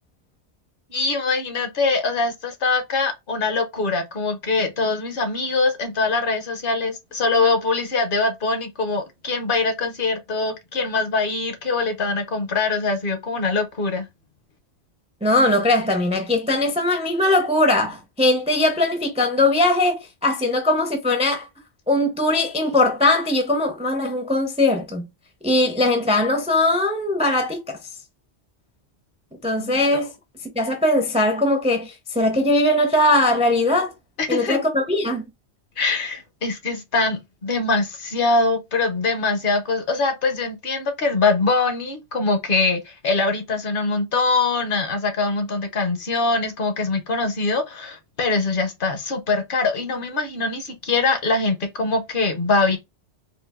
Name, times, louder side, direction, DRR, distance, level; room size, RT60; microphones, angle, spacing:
voice 1, 0.9-14.1 29.6-30.0 34.2-34.6 35.8-52.8, left 3 dB, 55° left, 0.9 m, -23 dB
voice 2, 15.2-21.5 21.9-25.0 25.4-27.8 29.4-30.1 30.6-33.9 34.3-35.2, left 1 dB, 10° right, 0.4 m, -20 dB
3.8 x 2.4 x 2.3 m
omnidirectional pair, 1.2 m